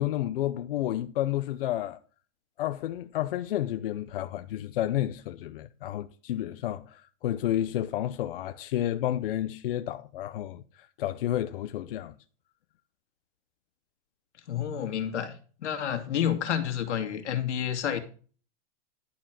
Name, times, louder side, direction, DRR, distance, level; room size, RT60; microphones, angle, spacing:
voice 1, 0.0-2.0 2.6-12.1, left 12 dB, 55° left, 0.6 m, -31 dB
voice 2, 14.5-15.3 15.6-18.0, left 9 dB, 80° left, 2.3 m, -29 dB
11.5 x 4.4 x 7.4 m
supercardioid pair, 165°, 34 cm